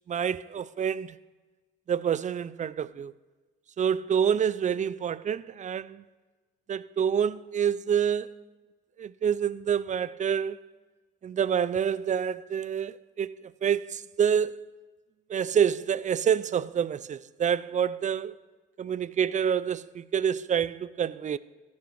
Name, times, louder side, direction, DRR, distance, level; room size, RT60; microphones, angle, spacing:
voice 1, 0.1-1.2 1.9-3.1 3.8-6.0 6.7-8.3 9.0-10.6 11.2-14.7 15.3-18.3 18.8-21.4, right 8 dB, 40° right, 0.4 m, -27 dB
14.5 x 6.4 x 7.1 m
cardioid pair, 90°, 20 cm